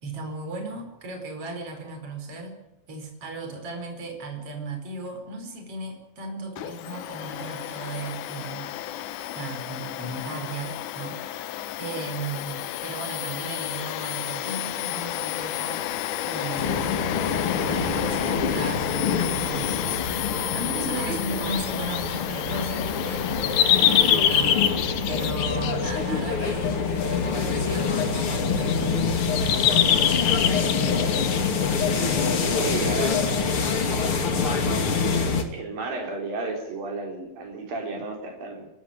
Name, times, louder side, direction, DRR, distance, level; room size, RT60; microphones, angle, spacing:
voice 1, 0.0-2.6 2.9-8.7 9.4-11.2 11.8-17.1 17.6-23.3 23.7-24.6 25.1-29.3, right 3 dB, 40° right, 4 dB, 5.6 m, -36 dB
Domestic sounds home sounds, 6.6-25.4, left 13 dB, 70° left, 2.3 m, -32 dB
sound 1, 16.6-35.4, left 5 dB, 40° left, 3.0 m, -26 dB
sound 2, 21.4-33.5, left 10 dB, 85° left, 3.3 m, -26 dB
voice 2, 32.6-34.1 35.5-38.7, right 3 dB, 85° right, 2 dB, 6.0 m, -33 dB
30.0 x 13.0 x 9.5 m, 0.87 s
omnidirectional pair, 3.9 m